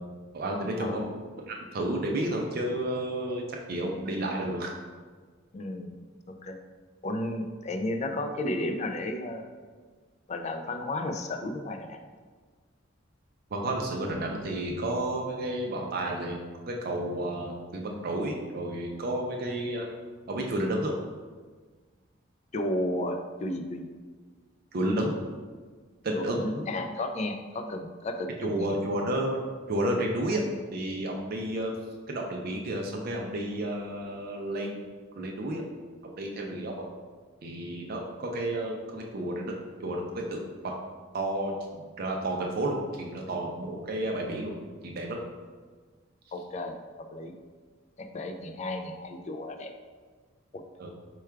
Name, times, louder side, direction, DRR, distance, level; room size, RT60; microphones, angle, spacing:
voice 1, 0.3-3.4 3.7-4.7 13.5-16.4 16.7-19.9 20.3-20.9 24.7-25.2 26.0-26.4 28.4-29.4 29.7-30.4 30.7-31.7 32.1-34.8 35.2-35.6 36.2-36.8 37.4-39.5 39.8-40.7 41.1-44.5 44.8-45.2 50.8-50.9, right 1 dB, 50° right, 0 dB, 0.5 m, -31 dB
voice 2, 5.5-5.9 6.3-6.6 7.0-9.5 10.3-12.0 22.5-23.9 26.1-28.8 46.3-47.3 48.0-49.7 50.5-50.6, left 1 dB, 35° left, 6 dB, 0.3 m, -33 dB
4.6 x 2.2 x 4.5 m, 1.5 s
head